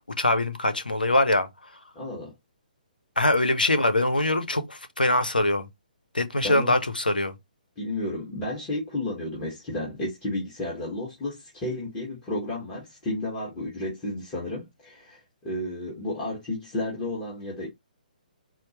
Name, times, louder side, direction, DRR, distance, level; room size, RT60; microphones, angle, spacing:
voice 1, 0.2-1.5 3.2-5.7 6.1-7.3, left 1 dB, 90° left, 0.6 m, -23 dB
voice 2, 1.9-2.3 6.4-6.7 7.8-17.7, left 1 dB, 20° left, 1.2 m, -32 dB
4.3 x 2.0 x 2.8 m
figure-of-eight pair, 130°, 5 cm